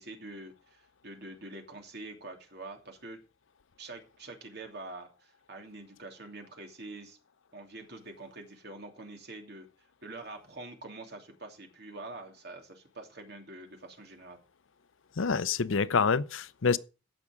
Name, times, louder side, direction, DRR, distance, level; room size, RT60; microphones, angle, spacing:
voice 1, 0.0-3.2 3.8-7.2 7.5-9.7 10.0-14.4, right 2 dB, 55° right, 2.8 m, -45 dB
voice 2, 15.2-16.8, left 5 dB, 80° left, 0.6 m, -27 dB
15.5 x 6.2 x 5.1 m
head